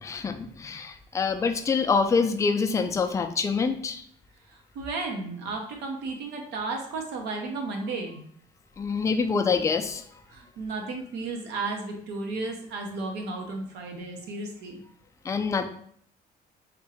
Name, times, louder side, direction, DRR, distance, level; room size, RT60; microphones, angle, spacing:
voice 1, 0.0-4.0 8.8-10.0 15.3-15.7, left 5 dB, 20° left, 6 dB, 0.3 m, -26 dB
voice 2, 4.5-8.2 8.8-9.0 10.3-14.8, right 3 dB, 80° right, 2 dB, 0.9 m, -34 dB
3.6 x 2.5 x 4.3 m, 0.62 s
cardioid pair, 110°, 17 cm